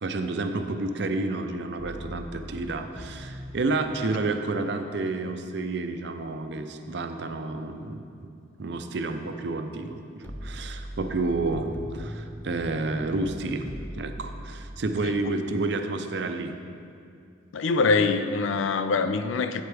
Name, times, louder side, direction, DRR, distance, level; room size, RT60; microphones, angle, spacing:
voice 1, 0.0-8.3 8.6-16.5, right 2 dB, 60° right, 7 dB, 0.5 m, -30 dB
sound 1, 1.8-3.5 10.2-14.8, equal, 10° left, 0.4 m, -39 dB
voice 2, 17.5-19.6, left 4 dB, 85° left, 10 dB, 0.4 m, -24 dB
8.3 x 7.9 x 3.4 m, 2.4 s
head